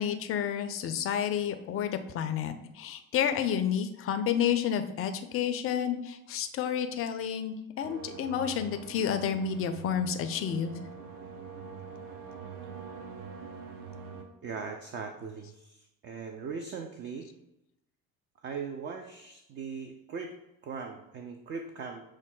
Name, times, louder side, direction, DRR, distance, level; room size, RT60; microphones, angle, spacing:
voice 1, 0.0-10.8, left 8 dB, 35° left, 8 dB, 0.5 m, -30 dB
sound 1, 7.8-14.2, right 5 dB, 55° right, 0.8 m, -44 dB
voice 2, 14.4-17.3 18.4-20.4 20.6-22.0, right 5 dB, 30° right, 4 dB, 0.4 m, -39 dB
6.0 x 2.1 x 3.7 m, 0.87 s
hypercardioid pair, 60°, 43 cm